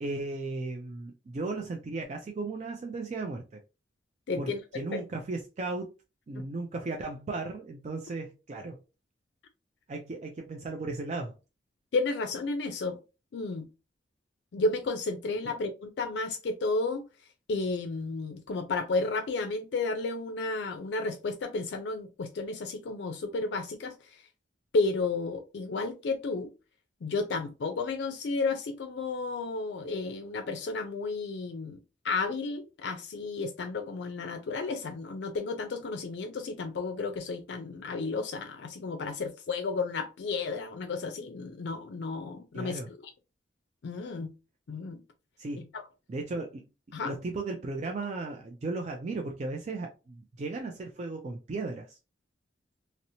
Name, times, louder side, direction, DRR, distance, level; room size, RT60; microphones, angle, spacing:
voice 1, 0.0-3.6 4.4-5.9 6.3-8.8 9.9-11.3 42.5-42.9 45.4-45.7 46.1-46.6 47.0-52.0, right 3 dB, 40° right, 0.3 m, -36 dB
voice 2, 4.3-4.6 6.4-6.5 11.9-13.0 13.3-13.7 14.5-17.1 17.5-24.2 24.7-26.5 27.0-43.0 43.8-44.3 44.7-45.0 45.6-45.8 46.9-47.1, left 3 dB, 75° left, 0.4 m, -32 dB
2.8 x 2.0 x 2.6 m
head